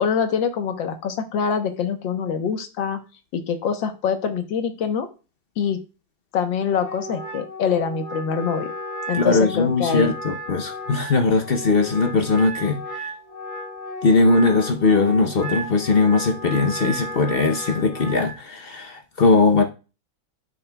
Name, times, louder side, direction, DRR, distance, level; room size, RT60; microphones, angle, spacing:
voice 1, 0.0-3.0 3.3-5.1 5.6-5.8 6.3-8.7 9.1-10.1, left 7 dB, 80° left, 1.7 m, -24 dB
Wind instrument woodwind instrument, 6.7-18.4, equal, 10° left, 1.0 m, -34 dB
voice 2, 9.1-13.1 14.0-19.6, left 3 dB, 60° left, 0.6 m, -20 dB
9.9 x 6.9 x 2.3 m
omnidirectional pair, 2.0 m